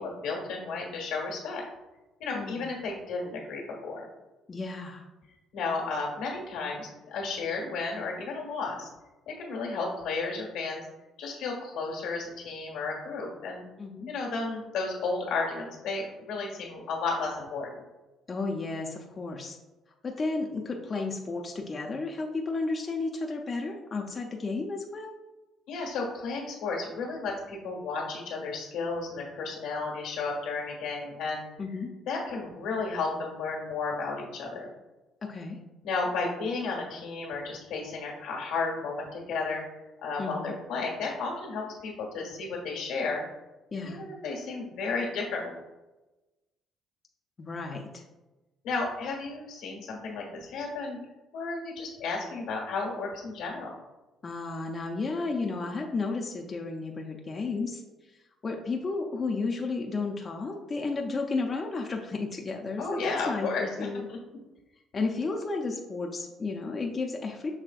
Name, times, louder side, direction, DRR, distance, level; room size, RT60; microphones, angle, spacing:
voice 1, 0.0-1.6 2.2-4.0 5.5-8.9 9.3-10.8 11.2-13.7 14.1-17.7 25.7-31.4 32.1-34.7 35.8-39.6 40.0-43.2 43.8-45.6 48.6-51.0 51.3-53.7 62.8-63.7 64.1-64.2, left 4 dB, 85° left, -1 dB, 1.4 m, -33 dB
voice 2, 2.3-2.7 4.5-5.1 13.8-14.1 18.3-19.6 20.0-25.1 31.6-31.9 35.2-35.6 40.2-40.5 43.7-44.0 47.4-48.0 54.2-64.1 64.9-67.5, left 3 dB, 35° left, 1 dB, 0.5 m, -33 dB
6.2 x 3.2 x 2.4 m, 1.1 s
cardioid pair, 85°, 0 cm